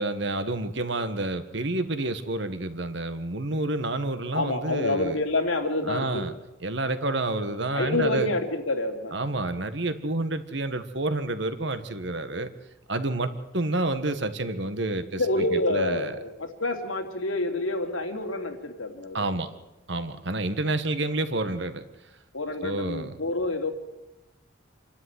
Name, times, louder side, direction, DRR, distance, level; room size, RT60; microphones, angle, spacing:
voice 1, 0.0-5.2 5.8-6.3 6.6-8.3 9.1-12.5 12.9-16.2 19.1-19.5 19.9-21.8 22.6-23.1, right 2 dB, 60° right, 10 dB, 1.7 m, -29 dB
voice 2, 4.3-6.2 7.7-9.1 15.1-19.3 22.3-23.7, left 2 dB, 90° left, 3 dB, 3.1 m, -27 dB
27.0 x 12.5 x 9.9 m, 1.0 s
head